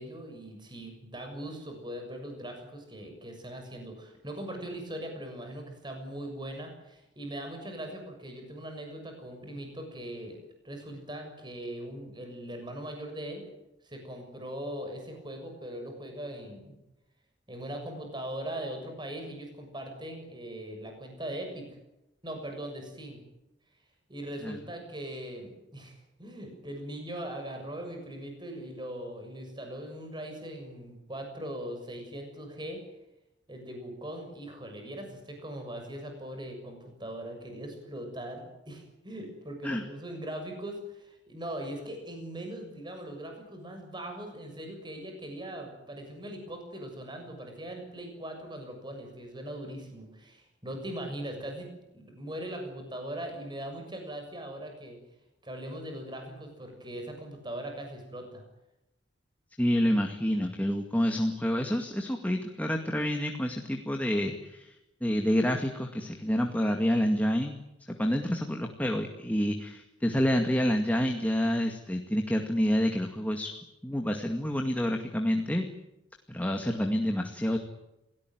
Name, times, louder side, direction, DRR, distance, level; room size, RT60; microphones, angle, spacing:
voice 1, 0.0-10.4 10.6-13.4 13.8-16.7 17.5-21.8 22.2-23.2 24.1-32.8 33.5-55.0 55.4-58.4, right 1 dB, 25° right, 4 dB, 6.8 m, -40 dB
voice 2, 59.6-73.5 73.8-75.6 76.3-77.6, equal, 10° left, 3 dB, 2.1 m, -28 dB
28.5 x 18.0 x 9.5 m, 0.91 s
head